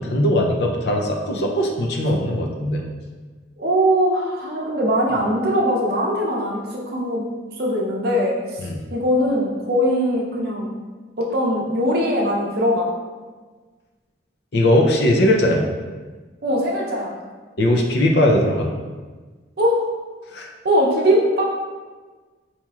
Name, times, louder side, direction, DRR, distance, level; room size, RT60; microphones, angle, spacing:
voice 1, 0.0-2.8 8.6-8.8 14.5-15.7 17.6-18.7 20.3-20.5, left 1 dB, 60° left, 1 dB, 0.5 m, -19 dB
voice 2, 3.6-6.6 6.9-7.2 7.6-8.3 8.9-10.7 11.2-12.9 16.4-17.1 19.6-19.8 20.6-21.4, equal, 55° right, -3 dB, 0.6 m, -20 dB
4.2 x 2.9 x 2.3 m, 1.4 s
head